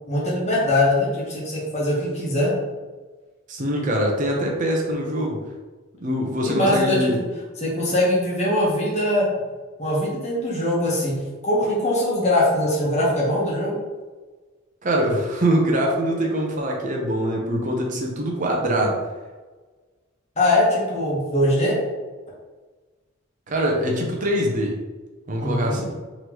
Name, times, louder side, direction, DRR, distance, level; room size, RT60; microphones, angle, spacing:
voice 1, 0.1-2.5 6.4-7.1 7.6-9.3 9.8-11.2 11.4-13.8 20.4-21.7 25.4-25.8, left 1 dB, 30° left, -5 dB, 1.2 m, -22 dB
voice 2, 3.5-5.4 6.0-7.2 14.8-19.0 23.5-24.8 25.3-26.0, equal, 35° right, 0 dB, 0.7 m, -23 dB
3.9 x 3.2 x 3.0 m, 1.3 s
head